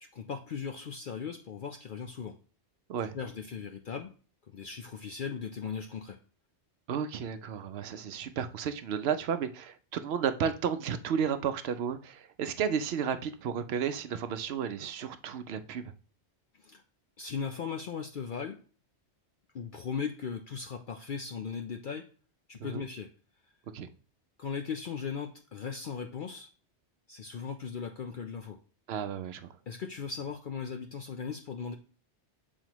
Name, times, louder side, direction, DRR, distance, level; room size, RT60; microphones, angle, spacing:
voice 1, 0.0-2.4 3.1-4.1 4.5-6.2 16.6-16.8 17.2-18.6 19.5-22.0 22.5-23.1 24.4-26.5 27.1-28.6 29.7-31.8, left 6 dB, 55° left, 0.6 m, -38 dB
voice 2, 6.9-15.9 22.6-22.8 23.7-23.9 28.9-29.5, right 7 dB, 65° right, 0.8 m, -33 dB
7.7 x 4.2 x 3.0 m
omnidirectional pair, 1.2 m